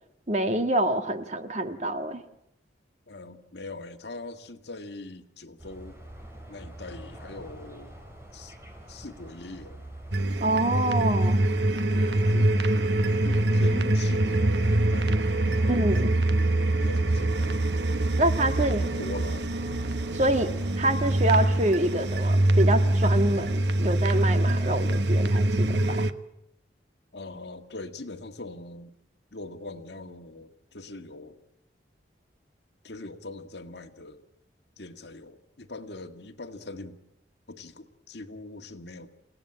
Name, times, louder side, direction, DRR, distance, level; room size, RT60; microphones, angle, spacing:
voice 1, 0.3-2.2 10.4-11.4 15.7-16.2 18.2-18.8 20.1-20.5 20.8-26.1, right 1 dB, 40° right, 8 dB, 1.7 m, -26 dB
voice 2, 3.1-6.0 6.5-7.9 8.3-8.6 8.9-9.8 11.9-12.6 13.2-16.2 16.6-17.7 18.6-19.6 27.1-28.9 29.3-31.4 32.8-34.2 34.8-37.0 37.5-39.1, left 2 dB, 65° left, 7 dB, 1.8 m, -42 dB
sound 1, 5.6-24.0, right 1 dB, 15° right, 4.1 m, -46 dB
sound 2, 10.1-26.1, right 1 dB, 70° right, 1.1 m, -24 dB
29.0 x 17.0 x 8.8 m, 0.81 s
head